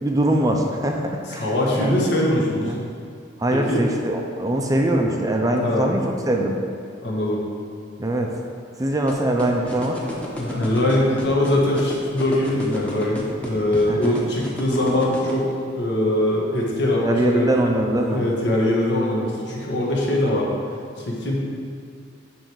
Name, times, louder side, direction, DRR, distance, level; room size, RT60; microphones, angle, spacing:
voice 1, 0.0-1.0 1.3-1.9 2.6-2.8 3.4-6.6 8.0-8.3 8.8-10.0 13.9-14.2 17.0-18.2, right 1 dB, 20° right, 1 dB, 0.5 m, -22 dB
voice 2, 1.3-2.7 3.5-3.9 5.6-5.8 7.0-7.4 10.4-15.4 15.7-17.5 18.1-20.6 21.0-21.3, left 1 dB, 65° left, -3 dB, 1.6 m, -22 dB
sound 1, 9.1-15.3, equal, 5° left, 1.0 m, -31 dB
10.0 x 3.4 x 6.3 m, 2.3 s
head